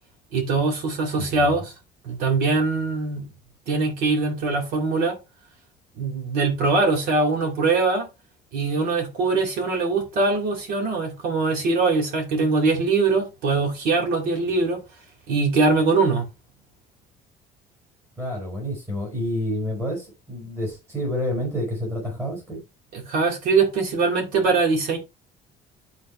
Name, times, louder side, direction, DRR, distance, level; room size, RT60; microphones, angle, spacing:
voice 1, 0.3-1.7 2.0-3.3 3.7-5.2 5.9-8.1 8.5-14.8 15.3-16.3 22.9-25.0, right 3 dB, 65° right, 3.2 m, -22 dB
voice 2, 1.2-1.6 18.2-22.6, left 1 dB, 15° right, 4.7 m, -29 dB
11.5 x 4.1 x 3.2 m
cardioid pair, 180°, 16 cm